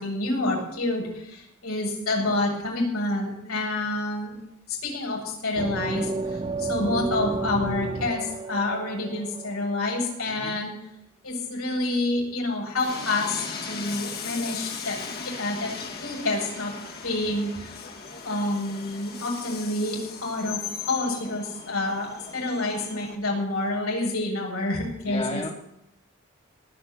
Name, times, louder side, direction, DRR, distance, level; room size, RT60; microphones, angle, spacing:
voice 1, 0.0-4.3 4.7-10.7 11.2-15.0 15.2-16.7 17.0-17.8 18.2-25.5, left 2 dB, 90° left, -2 dB, 7.7 m, -28 dB
sound 1, 5.6-10.1, right 3 dB, 25° right, 0.6 m, -32 dB
voice 2, 10.3-10.6 25.0-25.5, left 2 dB, 30° left, 0 dB, 2.1 m, -33 dB
Train, 12.8-23.1, left 5 dB, 50° left, 2.3 m, -38 dB
19.0 x 6.7 x 9.5 m, 0.79 s
head